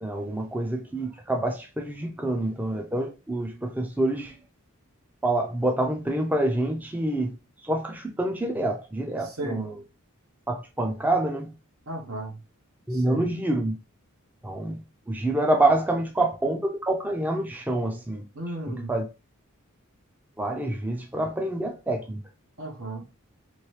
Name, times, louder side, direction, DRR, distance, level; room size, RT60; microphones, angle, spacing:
voice 1, 0.0-4.3 5.2-9.8 10.5-11.5 12.9-13.7 14.4-14.8 15.1-18.2 18.7-19.0 20.4-22.2, right 1 dB, 10° right, 0.4 m, -27 dB
voice 2, 9.2-9.7 11.9-12.4 12.9-13.3 18.3-18.9 22.6-23.0, right 2 dB, 80° right, 1.0 m, -34 dB
3.1 x 3.0 x 3.1 m
head